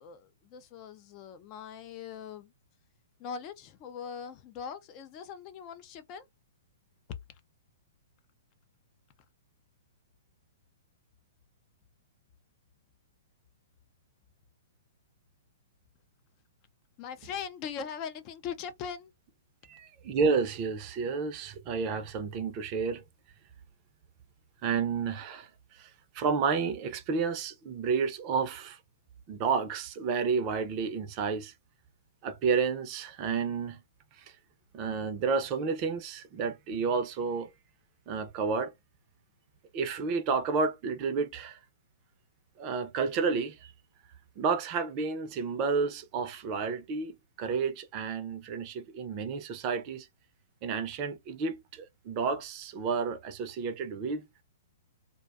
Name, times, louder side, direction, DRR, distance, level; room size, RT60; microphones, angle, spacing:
voice 1, 0.0-2.5 3.2-6.2 17.0-19.1, left 7 dB, 35° left, 0.4 m, -41 dB
voice 2, 19.7-23.0 24.6-25.5 25.7-28.8 29.3-31.5 32.2-33.8 34.2-34.3 34.7-37.5 38.1-38.7 39.7-41.6 42.6-43.7 44.4-50.1 50.6-54.3, right 5 dB, 35° right, 0.5 m, -31 dB
2.5 x 2.2 x 2.4 m
hypercardioid pair, 140°, 0 cm